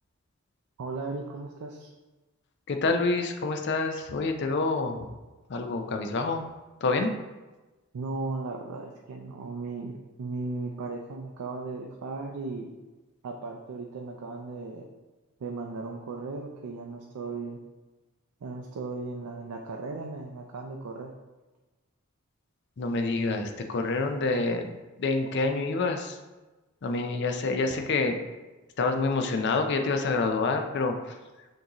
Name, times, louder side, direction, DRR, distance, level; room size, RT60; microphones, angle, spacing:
voice 1, 0.8-1.9 7.9-12.7 13.2-14.9 15.4-17.6 18.4-21.1, right 3 dB, 90° right, 1 dB, 0.4 m, -36 dB
voice 2, 2.7-5.1 5.5-6.5 6.8-7.1 22.8-26.2 26.8-28.2 28.8-31.1, left 3 dB, 50° left, 5 dB, 0.4 m, -27 dB
6.1 x 2.6 x 2.9 m, 1.2 s
head